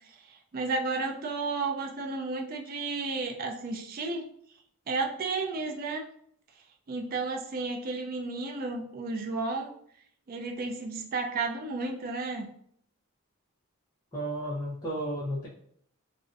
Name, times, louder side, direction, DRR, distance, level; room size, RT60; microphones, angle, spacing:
voice 1, 0.5-4.3 4.9-6.0 6.9-9.7 10.3-12.5, right 3 dB, 40° right, 2 dB, 0.3 m, -32 dB
voice 2, 14.1-15.5, right 1 dB, 15° left, -9 dB, 0.5 m, -33 dB
2.5 x 2.0 x 2.5 m, 0.65 s
head